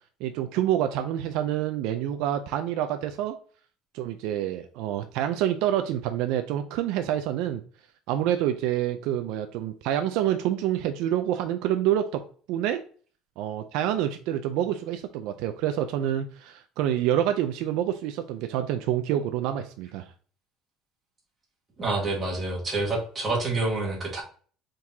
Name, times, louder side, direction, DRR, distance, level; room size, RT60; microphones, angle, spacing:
voice 1, 0.2-3.3 3.9-7.6 8.1-12.2 12.5-12.8 13.4-20.1, right 11 dB, 65° right, 8 dB, 0.4 m, -27 dB
voice 2, 21.8-24.2, right 2 dB, 20° right, -3 dB, 1.6 m, -27 dB
4.6 x 3.7 x 2.7 m, 0.42 s
cardioid pair, 180°, 0 cm